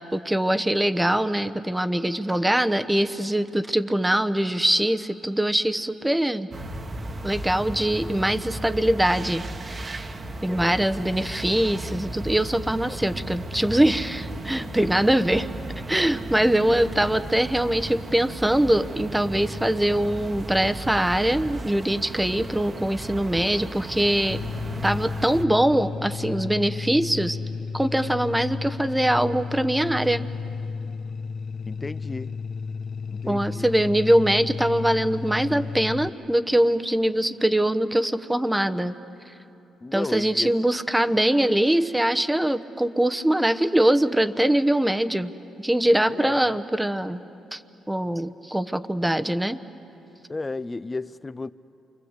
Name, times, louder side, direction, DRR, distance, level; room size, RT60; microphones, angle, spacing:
voice 1, 0.0-6.5 7.2-10.1 10.4-15.5 15.9-24.4 24.8-27.4 27.7-30.3 33.3-38.9 39.9-45.3 45.6-47.2 47.5-47.6 47.9-49.6, right 1 dB, 10° right, 10 dB, 1.0 m, -23 dB
sound 1, 6.5-25.4, right 1 dB, 35° right, 1.4 m, -35 dB
voice 2, 10.4-10.8 12.9-13.0 31.6-32.4 33.1-33.7 39.8-40.5 46.1-46.4 50.3-51.5, left 3 dB, 20° left, 16 dB, 0.6 m, -33 dB
sound 2, 24.3-36.1, left 5 dB, 60° left, 0.9 m, -33 dB
29.0 x 25.0 x 8.2 m, 3.0 s
cardioid pair, 90°, 0 cm